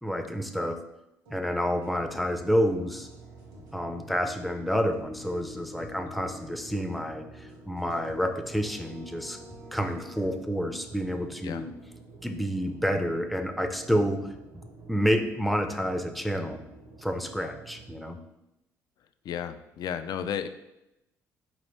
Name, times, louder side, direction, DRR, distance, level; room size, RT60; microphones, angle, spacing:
voice 1, 0.0-0.8 1.3-3.1 3.7-9.4 9.7-11.7 12.2-14.3 14.9-16.6 17.0-18.2, equal, ahead, 6 dB, 0.5 m, -29 dB
sound 1, 1.3-10.3, left 2 dB, 75° right, 1.3 m, -48 dB
sound 2, 1.9-18.1, right 5 dB, 50° right, 0.7 m, -50 dB
voice 2, 19.2-20.5, left 8 dB, 55° left, 10 dB, 0.3 m, -33 dB
4.3 x 3.0 x 3.2 m, 0.90 s
hypercardioid pair, 50°, 8 cm